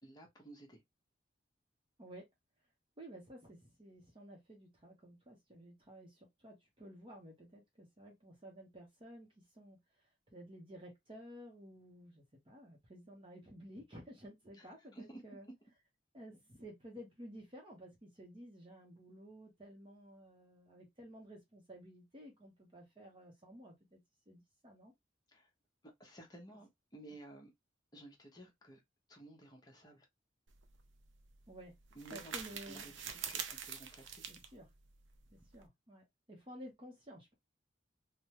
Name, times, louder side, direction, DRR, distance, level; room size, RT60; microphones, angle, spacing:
voice 1, 0.0-0.8 14.6-15.2 25.3-25.5 26.0-27.5 27.9-28.8 29.1-30.1 31.9-34.3, right 1 dB, 20° left, 0.9 m, -54 dB
voice 2, 3.0-9.8 10.3-15.5 16.1-24.0 24.3-24.9 31.5-31.7 32.1-32.9 34.3-34.7 35.3-37.3, equal, 25° right, 0.8 m, -53 dB
sound 1, 30.5-35.7, right 7 dB, 75° right, 0.5 m, -46 dB
3.4 x 2.1 x 2.9 m
head